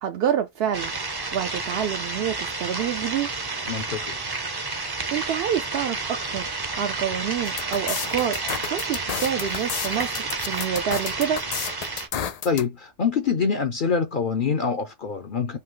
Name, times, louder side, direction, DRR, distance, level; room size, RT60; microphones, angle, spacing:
voice 1, 0.0-0.9 1.3-3.3 5.1-6.5 6.8-8.4 8.7-11.4, right 9 dB, 65° right, 0.7 m, -27 dB
sound 1, 0.7-12.1, right 3 dB, 25° right, 0.6 m, -30 dB
voice 2, 3.7-4.1 12.4-15.6, left 5 dB, 55° left, 0.7 m, -25 dB
sound 2, 7.4-12.6, left 8 dB, 80° left, 0.3 m, -31 dB
5.5 x 2.1 x 3.7 m
omnidirectional pair, 1.3 m